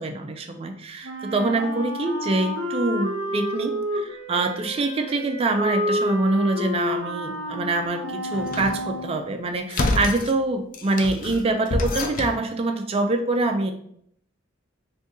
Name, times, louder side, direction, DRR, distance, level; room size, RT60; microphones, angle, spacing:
voice 1, 0.0-13.7, right 2 dB, 30° right, 5 dB, 0.3 m, -25 dB
Wind instrument woodwind instrument, 1.0-9.1, equal, 65° right, 0.7 m, -30 dB
sound 1, 8.3-8.8 9.7-10.3 10.7-12.4, left 2 dB, 45° left, 0.4 m, -27 dB
2.8 x 2.6 x 3.6 m, 0.67 s
head